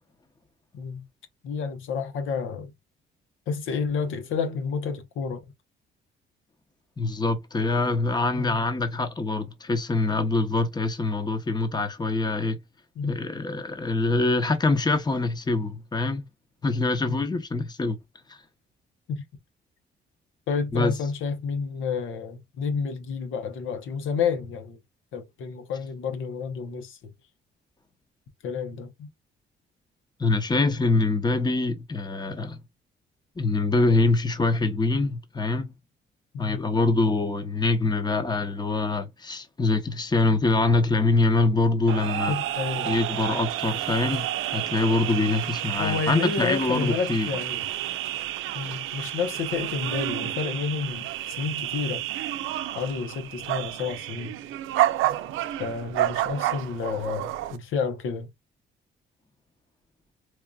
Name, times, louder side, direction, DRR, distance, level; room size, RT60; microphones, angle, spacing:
voice 1, 1.4-2.7 3.5-5.4 8.3-8.6 13.0-13.1 17.1-17.2 19.1-19.2 20.5-24.8 25.1-27.0 28.4-29.1 36.3-36.6 42.3-43.0 45.8-47.6 48.5-52.0 52.7-54.3 55.6-58.3, left 5 dB, 80° left, 0.8 m, -30 dB
voice 2, 7.0-12.6 13.0-16.2 16.6-18.0 18.3-18.4 20.7-20.9 30.2-32.6 33.4-35.7 36.4-42.3 42.8-44.2 44.5-47.3, left 3 dB, 20° left, 0.9 m, -24 dB
sound 1, 41.9-57.6, right 13 dB, 85° right, 0.5 m, -30 dB
4.5 x 2.5 x 2.3 m
cardioid pair, 90°, 20 cm